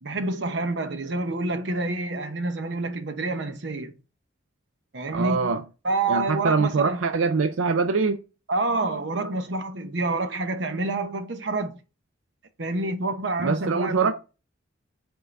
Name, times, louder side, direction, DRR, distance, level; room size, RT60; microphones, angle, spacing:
voice 1, 0.0-3.9 4.9-5.5 5.8-7.0 8.5-11.8 12.6-14.1, right 2 dB, 60° right, 0.8 m, -28 dB
voice 2, 5.1-5.6 6.1-8.2 13.4-14.1, right 4 dB, 90° right, 0.5 m, -23 dB
5.6 x 3.7 x 5.2 m
head